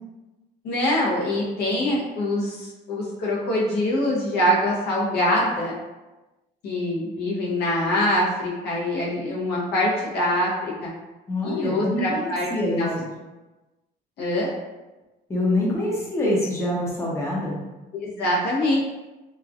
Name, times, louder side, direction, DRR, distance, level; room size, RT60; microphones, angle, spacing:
voice 1, 0.6-5.7 6.6-10.9 11.4-12.5 12.8-13.0 14.2-14.5 17.9-18.8, left 1 dB, 70° left, -5 dB, 0.9 m, -24 dB
voice 2, 11.3-12.9 15.3-17.6, left 1 dB, 15° left, -5 dB, 0.7 m, -25 dB
3.1 x 2.4 x 2.5 m, 1.1 s
cardioid pair, 110°, 17 cm